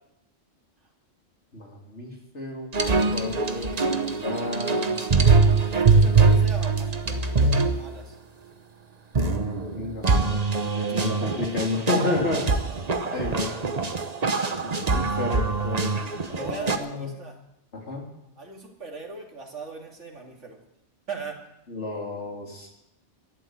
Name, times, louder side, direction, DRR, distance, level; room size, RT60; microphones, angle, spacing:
voice 1, 1.5-2.7 3.1-4.9 9.7-12.5 13.1-13.5 14.6-17.1 17.7-18.1 21.7-22.7, left 2 dB, 70° left, -1 dB, 3.7 m, -31 dB
sound 1, 2.7-7.7 9.1-16.8, right 4 dB, 35° right, 1.0 m, -23 dB
voice 2, 5.6-8.2 10.9-11.1 12.7-13.5 16.4-17.4 18.4-20.6 21.1-21.4, right 4 dB, 80° right, 1 dB, 2.9 m, -40 dB
13.0 x 11.5 x 8.3 m, 0.85 s
omnidirectional pair, 1.2 m